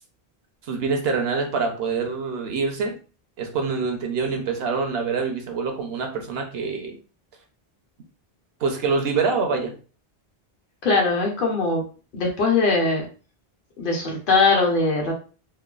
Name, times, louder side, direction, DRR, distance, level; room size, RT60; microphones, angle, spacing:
voice 1, 0.7-3.0 3.4-7.0 8.6-9.7, right 4 dB, 75° right, 4 dB, 0.9 m, -25 dB
voice 2, 10.8-11.8 12.1-13.1 13.8-15.1, left 3 dB, 60° left, 0 dB, 1.0 m, -21 dB
3.1 x 2.1 x 2.3 m, 0.36 s
omnidirectional pair, 1.1 m